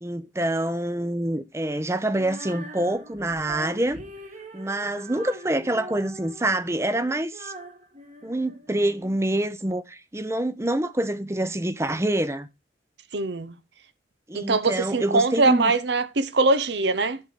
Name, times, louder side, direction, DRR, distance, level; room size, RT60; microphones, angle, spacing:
voice 1, 0.0-4.0 4.5-7.5 8.2-12.5 14.3-15.7, right 1 dB, 15° right, 0.7 m, -26 dB
Female singing, 2.1-9.2, right 1 dB, 40° right, 1.6 m, -42 dB
voice 2, 13.1-13.6 14.3-17.2, right 3 dB, 70° right, 0.8 m, -22 dB
11.5 x 3.9 x 6.6 m
head